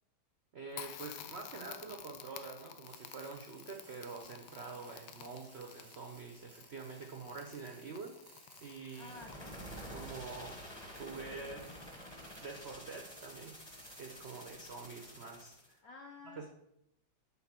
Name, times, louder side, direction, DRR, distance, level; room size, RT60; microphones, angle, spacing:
voice 1, 0.5-8.1 8.6-9.2 9.9-10.6 11.0-11.8 12.4-15.8 16.3-16.5, right 4 dB, 80° right, 2 dB, 0.5 m, -46 dB
Crackle, 0.7-12.3, left 10 dB, 80° left, 1.3 m, -53 dB
sound 1, 2.8-14.5, right 2 dB, 30° right, 0.4 m, -61 dB
voice 2, 8.9-9.6 15.8-16.5, left 3 dB, 65° left, 2 dB, 0.9 m, -51 dB
sound 2, 8.9-15.7, equal, 20° left, 0.7 m, -49 dB
5.6 x 3.9 x 5.9 m, 0.79 s
omnidirectional pair, 2.2 m